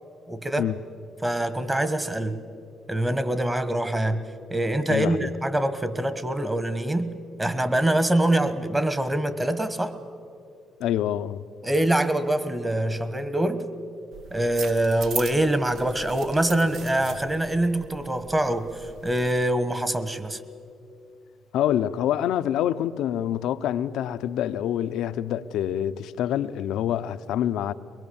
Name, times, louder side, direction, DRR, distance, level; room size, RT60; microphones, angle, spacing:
voice 1, 0.3-0.7 1.2-2.4 2.9-4.2 4.5-7.1 7.4-9.9 11.6-13.6 14.3-20.4, right 1 dB, 15° right, 1.5 m, -24 dB
voice 2, 4.9-5.3 10.8-11.5 21.5-27.7, left 11 dB, 85° left, 0.6 m, -26 dB
sound 1, 14.1-19.5, right 6 dB, 70° right, 1.0 m, -39 dB
23.0 x 21.5 x 7.1 m
cardioid pair, 90°, 0 cm